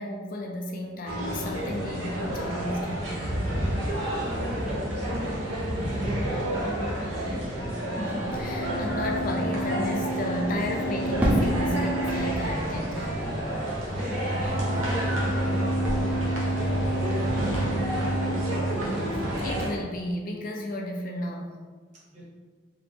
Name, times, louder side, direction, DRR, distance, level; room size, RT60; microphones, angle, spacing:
voice 1, 0.0-3.1 7.8-13.1 19.0-21.6, left 1 dB, 45° left, 2 dB, 0.4 m, -33 dB
sound 1, 1.1-19.7, right 1 dB, 80° right, 1.0 m, -30 dB
voice 2, 4.3-7.8 13.6-18.7 22.1-22.2, equal, 35° right, -6 dB, 1.1 m, -39 dB
sound 2, 7.6-18.7, right 1 dB, 80° left, 1.1 m, -30 dB
Fireworks, 11.2-15.6 15.8-16.6, equal, 10° right, 0.5 m, -31 dB
3.3 x 2.8 x 3.5 m, 1.4 s
head